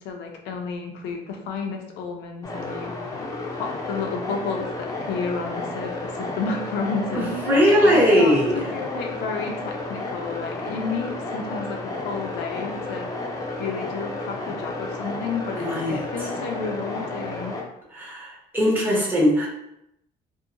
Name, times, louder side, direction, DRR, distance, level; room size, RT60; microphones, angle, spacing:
voice 1, 0.0-2.9 3.5-7.3 7.7-13.1 13.6-17.6, left 4 dB, 90° left, 2 dB, 0.5 m, -31 dB
sound 1, 2.4-17.6, left 2 dB, 20° left, 0.5 m, -32 dB
voice 2, 7.1-8.6 15.5-16.0 18.0-19.5, equal, 10° right, -5 dB, 0.9 m, -20 dB
2.7 x 2.1 x 2.5 m, 0.81 s
cardioid pair, 110°, 17 cm